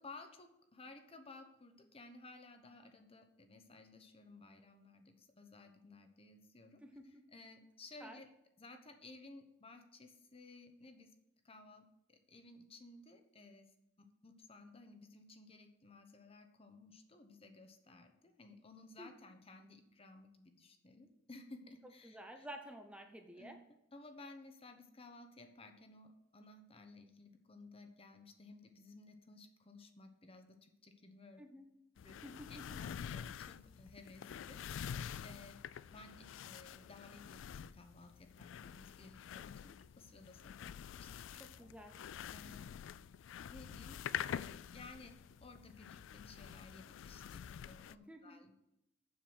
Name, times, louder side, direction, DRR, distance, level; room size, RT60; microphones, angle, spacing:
voice 1, 0.0-8.3 8.6-11.2 11.4-11.8 12.1-13.7 14.0-22.5 23.4-23.6 23.9-31.4 32.0-32.2 32.5-35.6 35.9-41.1 41.6-41.7 42.3-42.7 43.5-44.0 44.3-48.5, left 2 dB, 30° left, 6 dB, 1.0 m, -57 dB
voice 2, 21.8-23.6 31.4-31.7 32.2-32.8 41.4-42.0 48.1-48.4, equal, 5° right, 4 dB, 0.7 m, -51 dB
sound 1, 32.0-47.9, left 8 dB, 85° left, 0.3 m, -47 dB
7.3 x 6.8 x 6.2 m, 0.84 s
head